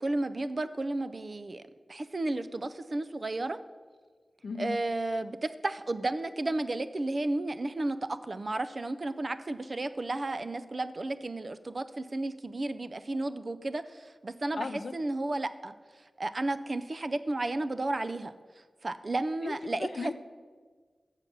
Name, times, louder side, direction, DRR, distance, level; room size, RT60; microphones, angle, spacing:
voice 1, 0.0-1.6 1.9-3.6 4.6-14.7 14.9-15.7 16.2-18.3 18.8-20.1, right 2 dB, 40° right, 11 dB, 0.4 m, -33 dB
voice 2, 4.4-4.8 14.5-14.9 19.4-20.1, left 4 dB, 70° left, 8 dB, 0.4 m, -36 dB
7.1 x 6.7 x 6.0 m, 1.5 s
wide cardioid pair, 115°, 0 cm